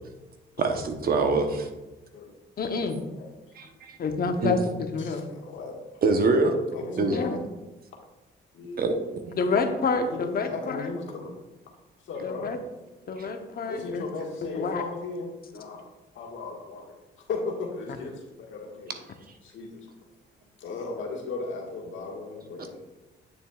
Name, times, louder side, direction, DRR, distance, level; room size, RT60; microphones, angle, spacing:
voice 1, 0.6-1.7 3.6-4.0 4.4-4.5 6.0-6.6 7.0-7.2 8.8-8.9 13.2-13.3, right 3 dB, 50° right, 5 dB, 1.0 m, -24 dB
voice 2, 2.6-3.0 4.0-5.3 7.1-7.4 9.4-10.9 12.2-12.6 13.1-14.1 14.5-14.8, left 4 dB, 50° left, 6 dB, 0.9 m, -28 dB
voice 3, 5.0-5.8 6.7-7.4 8.5-9.1 10.1-11.3 12.0-12.6 13.7-15.8 16.1-16.9 17.3-18.9 19.4-19.7 20.6-22.8, left 3 dB, 75° left, 0 dB, 1.7 m, -36 dB
8.7 x 7.1 x 2.4 m, 1.1 s
cardioid pair, 90°, 20 cm